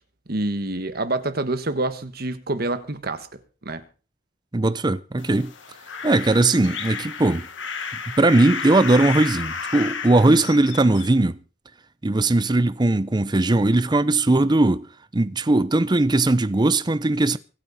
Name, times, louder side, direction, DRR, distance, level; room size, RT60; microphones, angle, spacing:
voice 1, 0.3-3.3 3.6-3.8 10.3-10.4, right 2 dB, 50° right, 1.4 m, -27 dB
voice 2, 4.5-5.5 6.0-7.5 8.2-11.4 12.0-14.9 15.1-17.4, right 2 dB, 20° right, 0.6 m, -19 dB
sound 1, 5.2-11.1, left 5 dB, 75° left, 1.8 m, -32 dB
25.0 x 8.7 x 4.1 m
head